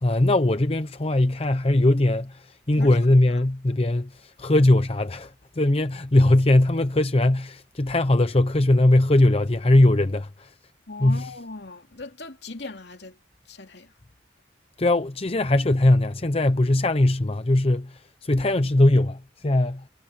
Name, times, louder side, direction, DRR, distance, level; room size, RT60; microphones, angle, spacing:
voice 1, 0.0-10.5 11.0-11.3 14.8-19.8, left 1 dB, 35° left, 0.8 m, -20 dB
voice 2, 10.9-13.2 13.5-13.9, left 3 dB, 65° left, 2.8 m, -38 dB
head